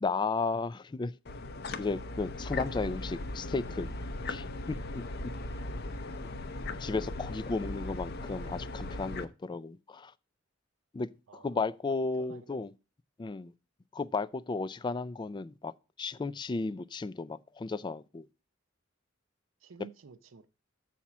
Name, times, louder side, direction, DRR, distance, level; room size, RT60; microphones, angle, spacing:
voice 1, 0.0-1.1 1.8-3.9 4.3-5.0 6.8-10.1 10.9-12.7 13.2-13.5 13.9-15.7 16.0-18.3, left 3 dB, 25° left, 0.3 m, -34 dB
sound 1, 1.3-9.3, left 2 dB, 55° left, 0.7 m, -38 dB
voice 2, 11.3-11.7 12.2-12.6 19.6-20.5, right 5 dB, 80° right, 0.6 m, -52 dB
7.2 x 4.2 x 5.9 m
head